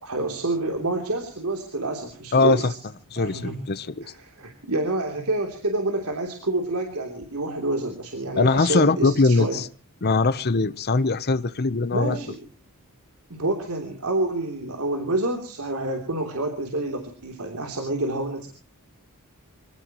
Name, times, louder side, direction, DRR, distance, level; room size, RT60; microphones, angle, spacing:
voice 1, 0.0-2.7 3.2-3.6 4.0-9.6 11.9-12.4 13.3-18.5, right 2 dB, 75° right, 3.2 m, -28 dB
voice 2, 2.3-2.7 3.1-4.0 8.4-9.7 10.0-12.2, left 3 dB, 45° left, 0.8 m, -21 dB
25.5 x 17.5 x 3.0 m
head